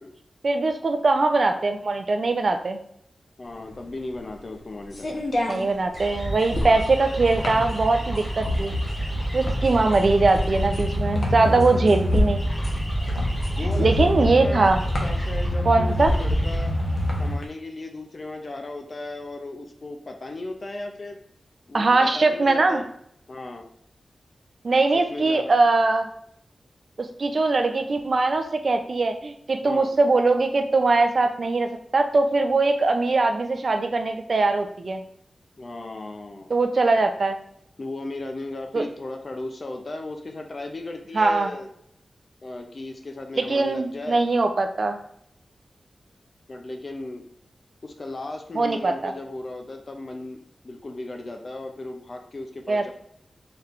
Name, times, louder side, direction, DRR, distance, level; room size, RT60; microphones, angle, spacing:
voice 1, 0.4-2.8 5.5-8.7 9.3-12.4 13.8-14.8 15.7-16.1 21.7-22.8 24.6-26.1 27.0-35.0 36.5-37.4 38.7-38.8 41.1-41.5 43.4-45.0 48.5-49.1 52.7-52.9, right 3 dB, 50° right, 6 dB, 0.5 m, -21 dB
voice 2, 3.4-5.1 11.4-12.1 13.6-14.7 15.0-16.7 17.2-21.2 21.7-22.9 23.3-23.7 24.9-25.5 29.6-29.9 35.6-36.5 37.8-41.7 42.4-44.2 46.5-47.3 47.8-52.9, left 2 dB, 40° left, 4 dB, 0.5 m, -36 dB
sound 1, 3.6-17.4, left 1 dB, 60° left, 0.9 m, -29 dB
sound 2, 5.9-17.3, equal, 25° left, 1.5 m, -27 dB
4.3 x 3.4 x 2.5 m, 0.70 s
wide cardioid pair, 130°, 0 cm